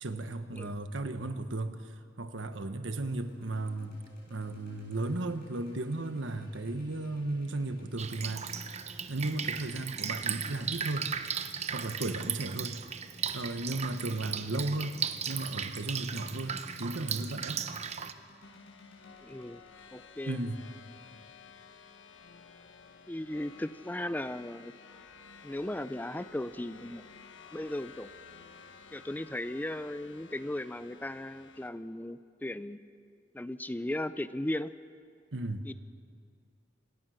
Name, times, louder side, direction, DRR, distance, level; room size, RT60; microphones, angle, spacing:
voice 1, 0.0-4.0 4.3-8.5 9.1-11.1 11.7-12.8 13.3-15.0 15.3-17.6 20.3-20.6 35.3-35.7, right 2 dB, 80° right, 9 dB, 1.3 m, -35 dB
sound 1, 3.2-21.3, left 1 dB, 55° left, 7.3 m, -59 dB
Drip, 8.0-18.1, right 7 dB, 35° right, 0.8 m, -36 dB
sound 2, 18.4-31.7, left 5 dB, 80° left, 1.4 m, -53 dB
voice 2, 19.2-19.6 19.9-20.4 23.1-24.7 25.4-27.0 27.5-28.1 28.9-32.9 33.3-34.7 35.6-35.7, left 1 dB, 10° left, 14 dB, 0.4 m, -36 dB
26.5 x 19.0 x 6.5 m, 2.2 s
head